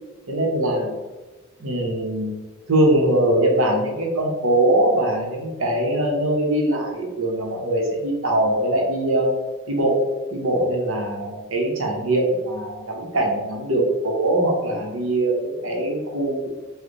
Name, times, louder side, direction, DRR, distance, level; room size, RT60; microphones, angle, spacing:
voice 1, 0.3-1.0 1.6-2.4 2.7-9.3 9.7-16.5, right 1 dB, 65° right, -1 dB, 0.8 m, -22 dB
3.2 x 2.1 x 3.8 m, 1.2 s
head